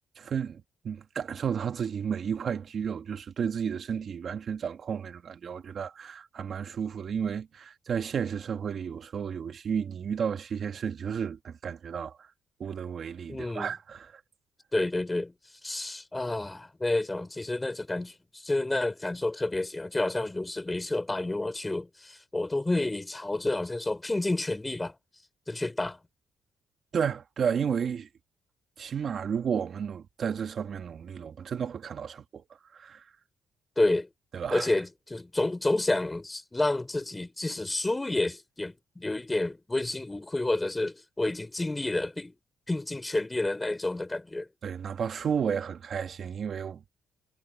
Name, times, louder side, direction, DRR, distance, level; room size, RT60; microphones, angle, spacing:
voice 1, 0.2-12.3 12.6-14.2 26.9-28.1 28.8-32.4 32.7-33.0 34.3-34.7 44.6-46.8, right 7 dB, 55° right, 1.8 m, -32 dB
voice 2, 13.3-13.7 14.7-15.3 15.6-24.9 25.5-26.0 33.8-34.1 34.5-42.3 42.7-44.5, left 2 dB, 15° left, 3.2 m, -29 dB
cardioid pair, 90°, 0 cm